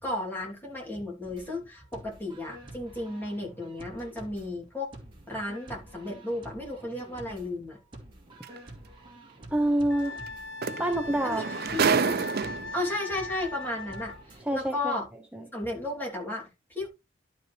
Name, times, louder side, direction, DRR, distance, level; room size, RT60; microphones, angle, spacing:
voice 1, 0.0-4.9 5.3-7.8 11.2-12.3 12.7-15.1 15.5-16.9, left 2 dB, 10° left, 2.8 m, -34 dB
sound 1, 1.2-14.4, right 1 dB, 25° right, 2.7 m, -49 dB
sound 2, 8.4-8.6 10.3-10.4 10.6-12.9 13.8-13.9, right 5 dB, 55° right, 0.5 m, -28 dB
voice 2, 9.5-10.2 10.8-11.4 14.4-14.9 15.3-15.4, right 1 dB, 5° right, 0.7 m, -27 dB
Wind instrument woodwind instrument, 9.9-14.2, left 3 dB, 75° left, 1.7 m, -40 dB
11.5 x 5.4 x 3.2 m
head